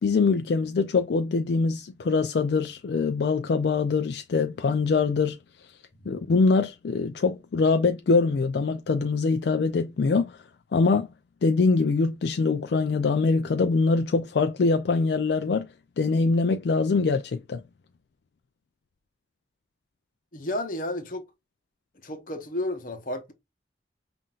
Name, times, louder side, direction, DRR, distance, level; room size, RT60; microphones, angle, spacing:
voice 1, 0.0-5.4 6.1-10.4 10.7-11.1 11.4-15.7 16.0-17.6, left 4 dB, 65° left, 0.4 m, -23 dB
voice 2, 20.3-21.2 22.0-23.3, left 1 dB, 45° left, 0.8 m, -32 dB
5.6 x 2.5 x 2.4 m
head